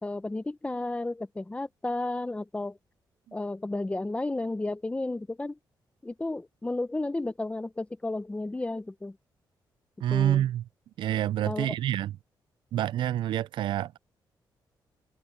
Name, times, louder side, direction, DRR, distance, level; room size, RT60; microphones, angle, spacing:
voice 1, 0.0-2.8 3.3-5.6 6.0-9.2 10.1-10.4 11.5-11.7, left 2 dB, 15° left, 1.0 m, -32 dB
voice 2, 10.0-10.6 11.0-12.2 12.7-14.0, right 12 dB, 80° right, 0.3 m, -27 dB
cardioid pair, 105°, 8 cm